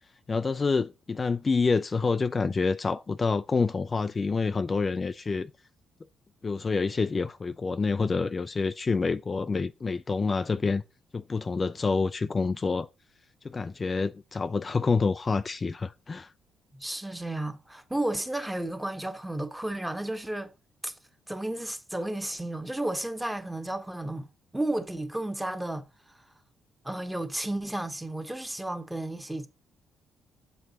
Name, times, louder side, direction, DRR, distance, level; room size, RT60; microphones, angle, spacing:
voice 1, 0.3-5.5 6.4-10.8 11.1-12.9 13.4-16.3, left 4 dB, 30° left, 0.3 m, -27 dB
voice 2, 16.7-20.5 20.8-20.9 21.3-24.3 24.5-25.8 26.1-26.2 26.8-29.5, right 1 dB, 5° right, 1.1 m, -32 dB
7.7 x 4.6 x 4.0 m
cardioid pair, 90°, 0 cm